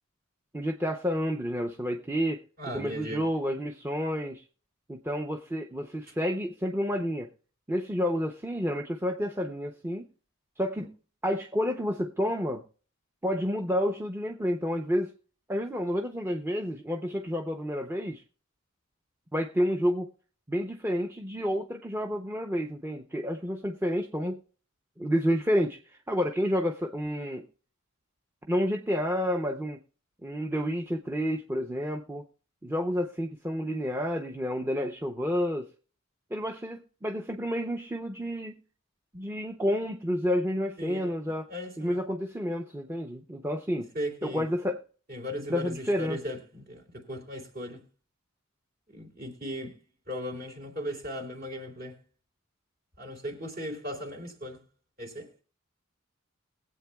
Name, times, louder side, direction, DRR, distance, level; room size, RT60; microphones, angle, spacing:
voice 1, 0.5-2.4 2.7-4.4 4.9-7.3 7.7-10.1 10.6-10.9 11.2-12.6 13.2-15.1 15.5-18.2 19.3-20.1 20.5-24.4 25.0-27.5 28.5-29.8 30.2-32.2 32.6-35.7 36.3-38.5 39.1-41.5 41.8-43.9 44.2-44.8 45.5-46.2, equal, 10° right, 0.7 m, -30 dB
voice 2, 2.6-3.3 10.8-10.9 40.8-42.0 43.9-44.5 45.1-47.8 48.9-49.8 50.1-52.0 53.0-54.6 55.0-55.3, equal, 45° right, 3.1 m, -37 dB
21.5 x 8.3 x 2.3 m
head